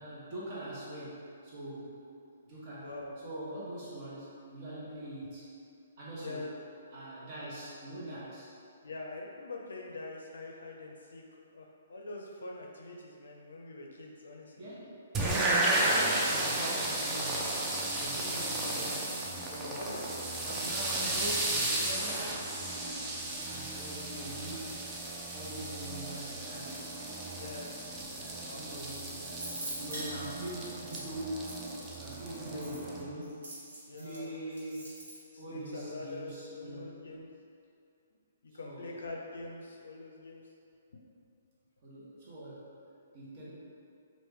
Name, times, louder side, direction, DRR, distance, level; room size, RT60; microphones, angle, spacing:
voice 1, 0.0-2.0 2.4-5.5 6.0-8.5 14.6-15.0 15.8-17.6 17.9-20.0 20.4-22.6 23.4-24.9 25.3-26.9 28.1-31.5 31.9-33.5 34.0-35.0 35.4-37.0 38.5-39.2 41.8-42.8 43.1-43.5, right 1 dB, 45° right, -7 dB, 1.1 m, -43 dB
voice 2, 2.8-3.1 6.2-6.5 8.8-14.7 16.4-16.5 19.7-20.0 27.3-28.0 28.4-28.6 32.5-32.8 33.9-34.3 35.3-37.3 38.4-40.4, left 3 dB, 85° left, -1 dB, 0.4 m, -44 dB
sound 1, 15.1-33.0, right 1 dB, 15° right, 0.4 m, -34 dB
sound 2, 28.8-31.0 31.5-31.6 32.1-34.2 34.5-35.2, right 1 dB, 70° right, 1.2 m, -43 dB
3.0 x 2.5 x 3.5 m, 2.5 s
hypercardioid pair, 140°, 0 cm